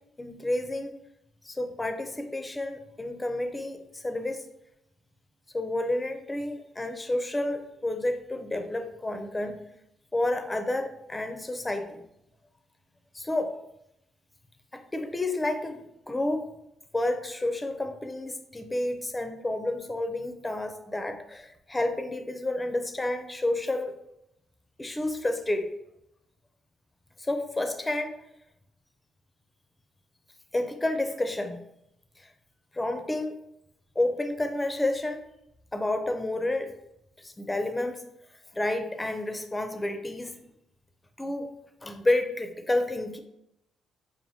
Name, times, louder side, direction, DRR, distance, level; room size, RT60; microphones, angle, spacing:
voice 1, 0.2-0.9 1.4-4.4 5.5-9.6 10.1-12.0 13.1-13.5 14.7-16.4 16.9-24.0 24.8-25.7 27.2-28.1 30.5-31.6 32.2-32.3 32.7-33.4 34.0-35.2 35.7-36.7 37.2-38.0 38.5-40.4 41.2-43.2, left 1 dB, 15° left, 6 dB, 0.5 m, -30 dB
5.4 x 2.5 x 2.8 m, 0.82 s
cardioid pair, 90°, 0 cm